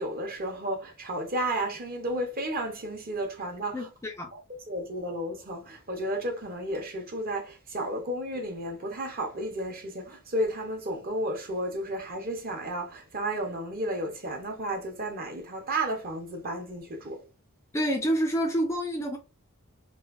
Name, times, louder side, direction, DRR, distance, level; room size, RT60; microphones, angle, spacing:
voice 1, 0.0-3.9 4.3-4.4 4.7-17.2, right 1 dB, 45° right, 0.8 m, -32 dB
voice 2, 3.7-4.3 17.7-19.2, equal, 15° left, 0.3 m, -28 dB
3.1 x 2.3 x 2.4 m
head